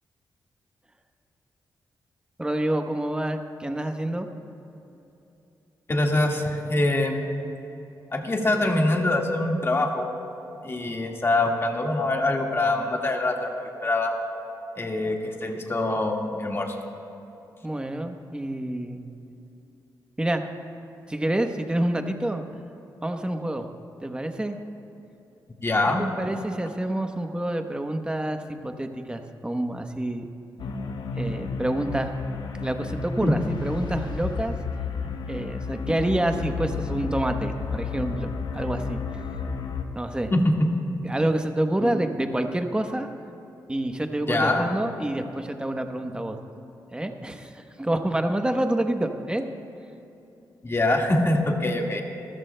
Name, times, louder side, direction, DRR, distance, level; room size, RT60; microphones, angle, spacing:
voice 1, 2.4-4.3 17.6-19.0 20.2-20.4 21.1-22.4 23.0-23.7 24.0-24.6 26.0-30.3 31.2-32.1 32.6-34.5 35.3-39.0 39.9-40.3 41.0-43.1 43.7-46.4 46.9-49.4, right 1 dB, 10° right, 6 dB, 1.0 m, -28 dB
voice 2, 5.9-7.2 8.1-10.1 10.6-14.1 14.8-16.8 25.6-26.1 33.2-33.3 40.3-40.7 41.8-41.9 44.3-44.7 50.6-52.0, left 2 dB, 30° left, 1 dB, 1.8 m, -24 dB
sound 1, 30.6-39.8, left 5 dB, 75° left, 1.0 m, -32 dB
28.0 x 14.0 x 2.2 m, 2.9 s
cardioid pair, 90°, 8 cm